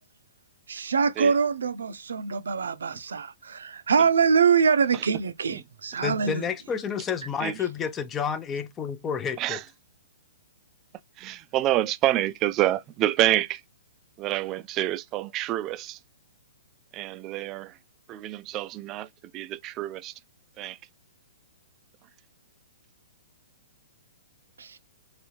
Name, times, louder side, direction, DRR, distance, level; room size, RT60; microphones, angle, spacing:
voice 1, 0.7-6.5 24.6-24.8, right 6 dB, 75° right, 0.6 m, -24 dB
voice 2, 6.0-9.6, left 7 dB, 20° left, 0.5 m, -30 dB
voice 3, 11.2-13.6 14.2-16.0 16.9-17.8 18.1-20.2 20.6-20.8, right 14 dB, 30° right, 0.4 m, -28 dB
4.0 x 2.7 x 3.0 m
hypercardioid pair, 125°, 0 cm